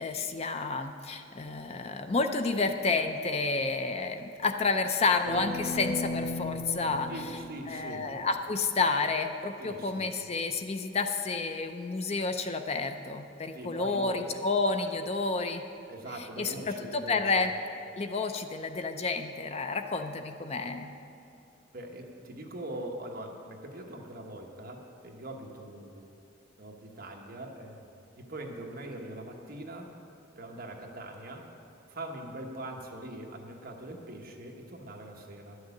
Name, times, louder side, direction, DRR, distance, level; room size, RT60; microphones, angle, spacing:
voice 1, 0.0-7.1 7.7-15.6 16.4-17.5 18.0-20.9, left 3 dB, 30° left, 7 dB, 0.5 m, -30 dB
sound 1, 5.2-8.3, left 2 dB, 55° left, 1.1 m, -36 dB
voice 2, 7.1-8.1 9.6-10.1 13.5-14.5 15.9-17.5 21.7-26.0 26.6-29.9 30.4-31.5 31.9-35.6, right 1 dB, 50° right, 1 dB, 1.2 m, -42 dB
11.0 x 6.5 x 8.3 m, 2.7 s
head